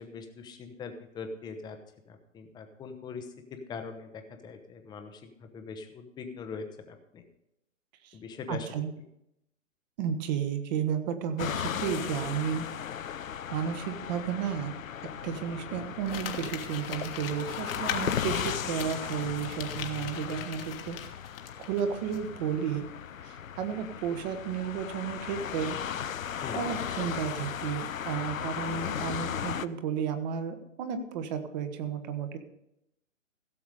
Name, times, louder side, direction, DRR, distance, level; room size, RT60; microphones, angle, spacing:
voice 1, 0.0-1.8 2.1-7.2 8.1-8.7 26.4-26.7, left 5 dB, 10° left, 6 dB, 0.9 m, -42 dB
voice 2, 8.5-8.9 10.0-12.7 13.5-14.7 15.2-21.0 21.6-22.9 23.2-25.8 26.5-32.4, right 8 dB, 35° right, 9 dB, 1.2 m, -33 dB
sound 1, 11.4-29.7, left 8 dB, 90° left, 0.6 m, -36 dB
Crumpling crinkling, 16.0-21.8 22.1-22.2, left 9 dB, 45° left, 1.4 m, -40 dB
16.0 x 7.1 x 4.9 m, 0.83 s
hypercardioid pair, 130°, 39 cm